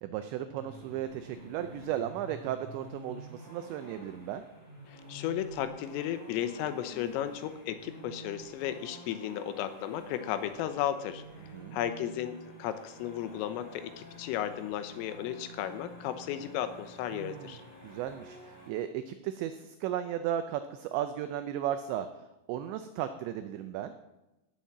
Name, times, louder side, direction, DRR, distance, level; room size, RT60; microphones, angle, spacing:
voice 1, 0.0-4.4 11.5-11.8 17.1-17.6 17.8-23.9, right 11 dB, 85° right, 9 dB, 2.5 m, -35 dB
sound 1, 0.6-18.7, right 1 dB, 20° left, 3.0 m, -49 dB
voice 2, 4.9-11.2 11.7-12.3 12.6-17.6, left 11 dB, 85° left, 10 dB, 3.5 m, -34 dB
17.5 x 7.1 x 7.4 m, 1.0 s
omnidirectional pair, 5.9 m